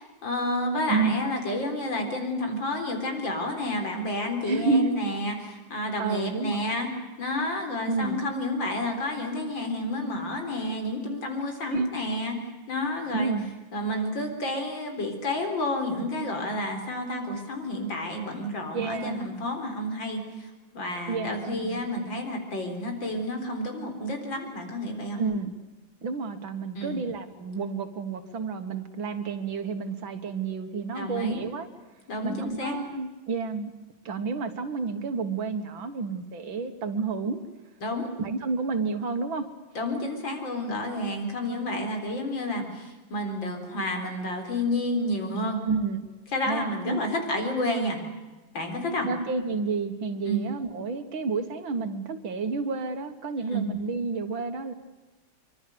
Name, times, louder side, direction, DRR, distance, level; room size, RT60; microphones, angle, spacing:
voice 1, 0.0-6.9 7.2-12.3 12.7-13.3 13.7-25.2 26.7-27.0 30.9-31.4 32.1-32.8 37.8-38.1 39.7-45.6 46.3-48.0 48.5-49.1 50.2-50.4 53.4-53.7, left 1 dB, 70° left, 4 dB, 4.8 m, -30 dB
voice 2, 0.9-1.2 4.4-4.9 6.0-6.7 7.8-8.3 11.7-11.9 13.1-13.5 18.7-19.2 21.1-21.8 25.2-25.6 26.0-31.7 32.2-33.7 34.1-37.4 38.2-39.5 45.6-46.0 46.4-47.0 49.1-54.7, right 4 dB, 80° right, 7 dB, 2.3 m, -30 dB
25.0 x 24.5 x 6.9 m, 1.2 s
omnidirectional pair, 2.1 m